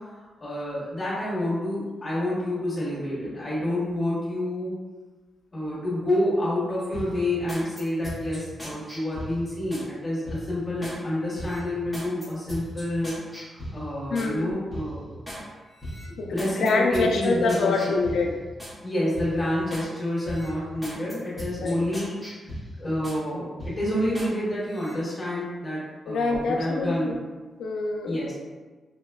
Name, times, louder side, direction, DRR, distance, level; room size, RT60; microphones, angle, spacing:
voice 1, 0.1-4.8 5.5-13.1 13.5-15.1 16.3-17.7 18.8-22.2 22.8-27.2 28.1-28.3, left 1 dB, 25° left, -8 dB, 1.2 m, -28 dB
sound 1, 6.9-9.9 10.3-11.0 11.3-14.3 14.7-15.4 15.8-18.8 19.1-19.9 20.2-23.2 23.6-24.3 24.7-24.9, equal, 5° right, 0.7 m, -38 dB
voice 2, 14.1-14.5 16.2-18.3 21.6-21.8 26.1-27.2 27.6-28.2, left 3 dB, 85° left, 1 dB, 0.4 m, -25 dB
4.8 x 2.1 x 2.2 m, 1.3 s
wide cardioid pair, 170°, 0 cm